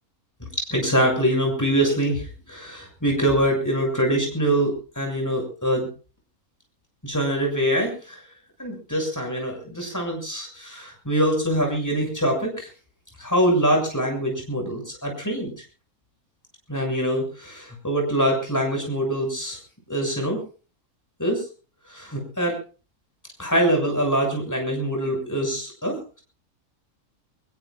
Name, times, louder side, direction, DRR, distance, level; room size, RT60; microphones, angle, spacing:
voice 1, 0.6-2.2 2.5-5.9 7.0-8.2 8.6-12.7 13.2-15.5 16.7-19.6 19.9-20.4 21.2-21.4 21.9-22.5 23.4-26.2, right 1 dB, 10° left, 1 dB, 6.7 m, -24 dB
24.0 x 21.0 x 2.4 m, 0.38 s
omnidirectional pair, 1.6 m